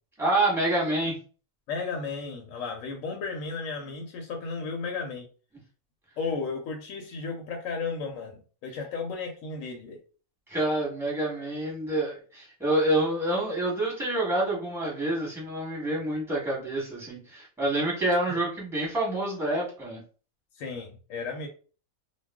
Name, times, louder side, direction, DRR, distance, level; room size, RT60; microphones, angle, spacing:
voice 1, 0.2-1.2 10.5-20.0, right 1 dB, ahead, -4 dB, 1.0 m, -27 dB
voice 2, 1.7-5.3 6.2-10.0 20.6-21.5, left 4 dB, 70° left, 2 dB, 0.9 m, -34 dB
2.3 x 2.2 x 3.5 m, 0.38 s
omnidirectional pair, 1.5 m